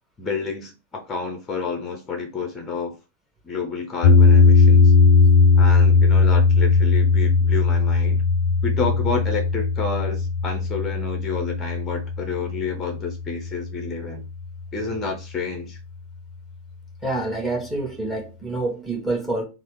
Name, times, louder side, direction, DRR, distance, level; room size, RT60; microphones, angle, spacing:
voice 1, 0.2-2.9 3.4-4.9 5.6-8.2 8.6-14.2 14.7-15.8, left 4 dB, 20° left, 0.6 m, -29 dB
sound 1, 4.0-14.3, left 4 dB, 60° left, 0.4 m, -18 dB
voice 2, 17.0-19.4, right 2 dB, 5° right, 1.2 m, -27 dB
3.1 x 2.0 x 3.0 m
figure-of-eight pair, 90°, 0 cm